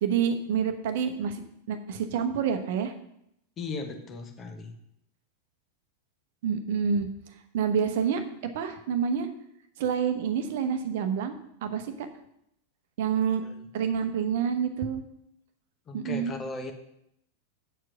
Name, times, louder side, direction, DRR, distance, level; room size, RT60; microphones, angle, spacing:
voice 1, 0.0-1.4 1.7-2.9 6.4-7.1 7.5-8.2 8.5-9.3 9.8-11.4 11.6-12.1 13.0-13.4 13.7-15.0 15.9-16.3, right 7 dB, 55° right, 8 dB, 0.9 m, -27 dB
voice 2, 3.6-4.7 13.4-13.6 15.9-16.7, left 3 dB, 25° left, 5 dB, 1.2 m, -37 dB
8.0 x 4.7 x 6.2 m, 0.77 s
figure-of-eight pair, 90°, 0 cm